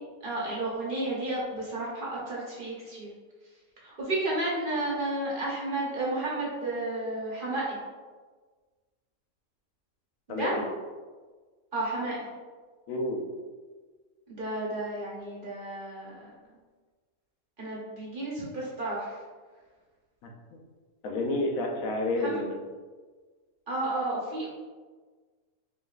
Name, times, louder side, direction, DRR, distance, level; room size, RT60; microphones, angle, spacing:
voice 1, 0.2-3.1 3.8-7.8 10.3-10.5 11.7-12.2 14.3-16.2 17.6-19.1 22.2-22.4 23.7-24.5, right 2 dB, 45° right, -5 dB, 1.0 m, -32 dB
voice 2, 10.3-10.6 12.9-13.2 20.2-20.3 21.0-22.6, left 2 dB, 80° left, 0 dB, 1.1 m, -29 dB
5.0 x 3.1 x 2.4 m, 1.4 s
omnidirectional pair, 1.4 m